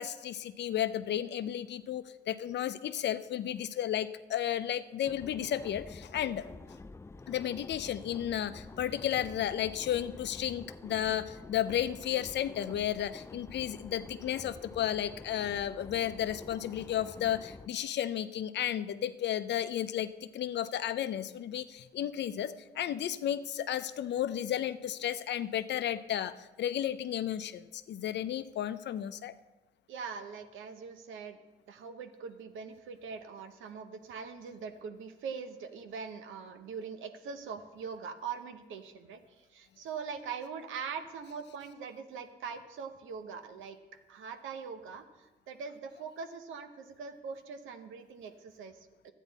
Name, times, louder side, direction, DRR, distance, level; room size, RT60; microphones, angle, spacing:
voice 1, 0.0-6.5 7.3-29.3, left 11 dB, 60° left, 12 dB, 0.6 m, -33 dB
sound 1, 5.0-17.7, left 3 dB, 15° left, 0.3 m, -48 dB
voice 2, 29.9-31.4 31.7-43.8 44.1-49.1, right 6 dB, 80° right, 8 dB, 1.0 m, -42 dB
12.5 x 9.2 x 4.1 m, 1.2 s
cardioid pair, 90°, 20 cm